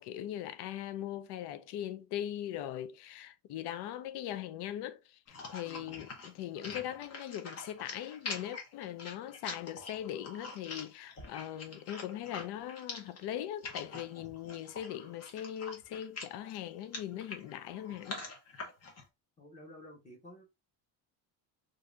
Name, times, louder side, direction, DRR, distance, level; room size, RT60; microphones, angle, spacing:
voice 1, 0.0-18.2, left 11 dB, 60° left, 0.5 m, -40 dB
sound 1, 5.3-19.0, left 3 dB, 35° left, 0.9 m, -45 dB
voice 2, 19.4-20.4, left 1 dB, 15° left, 1.1 m, -52 dB
2.6 x 2.6 x 3.2 m
cardioid pair, 150°, 46 cm